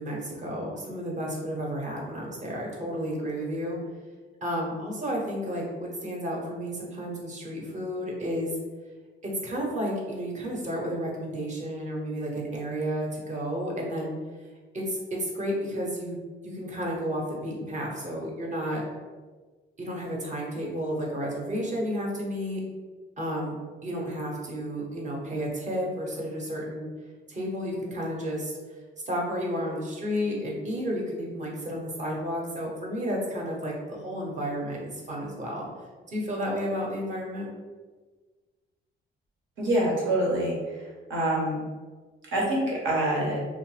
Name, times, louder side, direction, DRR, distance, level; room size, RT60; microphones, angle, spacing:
voice 1, 0.0-3.8 4.4-8.6 9.2-14.2 14.7-18.8 19.8-22.6 23.2-23.6 23.8-26.9 27.3-35.7 36.1-37.5, equal, 35° right, -2 dB, 0.8 m, -32 dB
voice 2, 39.6-40.8 41.1-41.6 42.3-43.4, right 1 dB, 75° right, -4 dB, 1.0 m, -26 dB
2.8 x 2.0 x 3.2 m, 1.4 s
cardioid pair, 90°, 20 cm